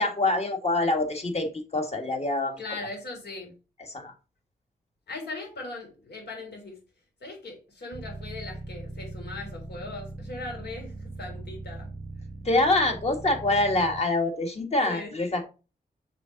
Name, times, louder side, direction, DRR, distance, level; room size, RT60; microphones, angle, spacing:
voice 1, 0.0-2.6 3.9-4.1 12.5-15.5, left 2 dB, 40° left, 4 dB, 1.7 m, -25 dB
voice 2, 2.6-3.5 5.1-6.8 7.2-11.9 14.9-15.1, left 3 dB, 75° left, 0 dB, 3.6 m, -39 dB
sound 1, 7.9-14.0, right 2 dB, 20° right, 0.9 m, -40 dB
6.7 x 3.8 x 5.8 m, 0.32 s
wide cardioid pair, 100°, 17 cm